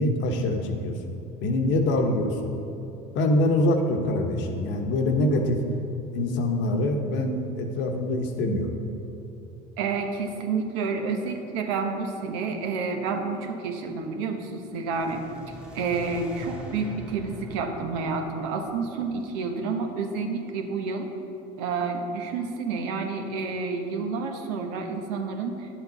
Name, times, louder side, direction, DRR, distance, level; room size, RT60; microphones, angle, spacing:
voice 1, 0.0-2.5 3.1-5.6 6.1-8.7, left 1 dB, 60° left, 4 dB, 1.2 m, -25 dB
voice 2, 9.8-15.2 15.7-21.1 21.6-25.7, right 4 dB, 75° right, 3 dB, 1.1 m, -29 dB
sound 1, 14.7-19.8, left 1 dB, 5° right, 1.3 m, -43 dB
10.0 x 7.8 x 4.0 m, 2.9 s
hypercardioid pair, 85°, 21 cm